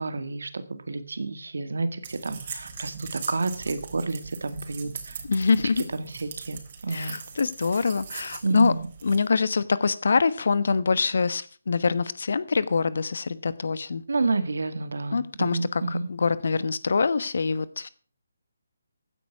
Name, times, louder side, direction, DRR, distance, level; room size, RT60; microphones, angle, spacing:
voice 1, 0.0-5.2 5.9-7.2 8.4-8.9 14.1-16.1, right 3 dB, 70° right, 1.9 m, -30 dB
sound 1, 2.0-9.3, right 6 dB, 40° right, 3.5 m, -40 dB
voice 2, 5.2-5.8 6.9-8.7 9.0-14.0 15.1-17.9, left 4 dB, 60° left, 1.1 m, -24 dB
15.5 x 9.5 x 6.0 m
figure-of-eight pair, 150°, 0 cm